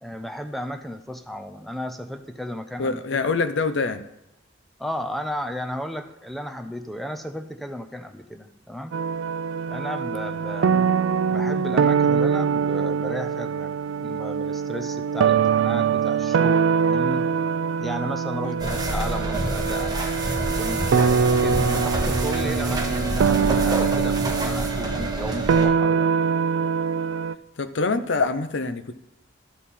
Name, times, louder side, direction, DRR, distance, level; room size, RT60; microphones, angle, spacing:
voice 1, 0.0-3.2 4.8-8.9 9.7-10.8 11.3-17.3 17.8-19.9 20.6-26.1, equal, ahead, 8 dB, 0.6 m, -34 dB
voice 2, 2.8-4.0 10.7-10.9 18.4-18.6 21.6-21.8 27.6-29.0, left 4 dB, 65° left, 11 dB, 0.6 m, -26 dB
sound 1, 8.9-27.3, right 6 dB, 80° right, 0.3 m, -23 dB
sound 2, 18.6-25.7, right 1 dB, 20° right, 1.2 m, -27 dB
12.0 x 7.3 x 4.3 m, 0.88 s
head